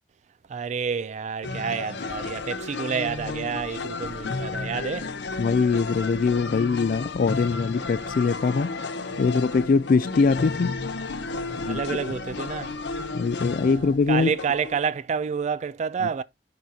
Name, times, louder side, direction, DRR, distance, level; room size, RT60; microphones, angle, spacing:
voice 1, 0.5-5.1 11.2-12.7 13.6-13.8 14.1-16.2, right 6 dB, 40° right, 0.3 m, -29 dB
sound 1, 1.4-14.8, left 3 dB, 70° left, 0.8 m, -33 dB
voice 2, 5.4-8.7 9.2-10.8 11.5-11.8 13.1-14.3 16.0-16.1, left 4 dB, 50° left, 0.4 m, -22 dB
10.5 x 4.0 x 2.8 m
head